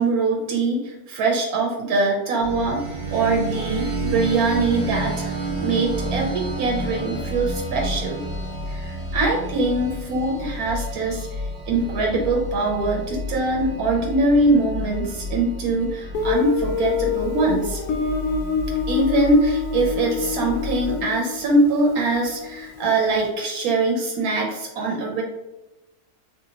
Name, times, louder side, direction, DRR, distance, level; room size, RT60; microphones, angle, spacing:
voice 1, 0.0-2.8 3.1-8.2 8.7-11.3 11.7-17.8 18.9-25.2, right 2 dB, 80° right, -1 dB, 1.1 m, -22 dB
sound 1, 2.4-21.0, equal, 45° right, 0.6 m, -30 dB
Guitar, 16.1-22.8, left 5 dB, 85° left, 1.1 m, -27 dB
3.8 x 2.7 x 2.8 m, 1.0 s
omnidirectional pair, 1.6 m